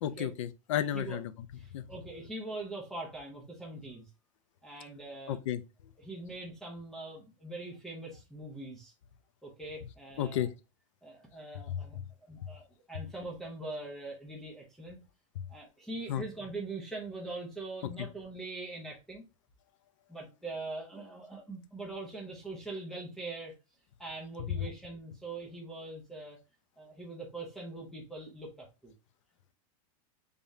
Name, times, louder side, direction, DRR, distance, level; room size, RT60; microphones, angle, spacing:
voice 1, 0.0-1.3 1.7-1.8 5.3-5.6 10.2-10.5 11.7-12.1 16.1-16.2 18.0-18.1 24.4-24.5, left 11 dB, 60° left, 0.5 m, -33 dB
voice 2, 1.6-4.1 4.6-5.4 6.0-8.9 9.4-10.5 11.0-12.0 12.3-15.0 15.5-19.3 20.1-23.6 24.0-26.4 26.8-28.9, right 2 dB, ahead, 0.5 m, -42 dB
3.5 x 3.5 x 2.6 m
supercardioid pair, 175°, 18 cm